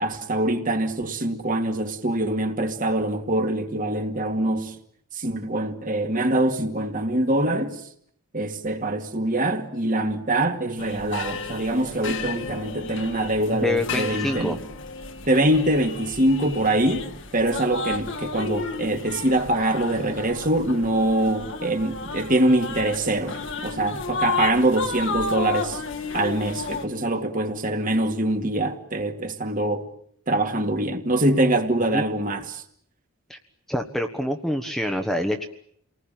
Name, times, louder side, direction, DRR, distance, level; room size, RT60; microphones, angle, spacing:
voice 1, 0.0-4.8 5.1-7.8 8.3-14.6 15.3-17.1 17.3-25.8 26.1-29.9 30.3-32.6, right 1 dB, 35° right, 2.2 m, -24 dB
sound 1, 10.8-26.9, left 4 dB, 55° left, 1.9 m, -33 dB
voice 2, 13.5-14.6 31.9-32.0 33.3-33.4 33.7-35.5, left 1 dB, ahead, 1.3 m, -26 dB
29.5 x 19.5 x 9.1 m
head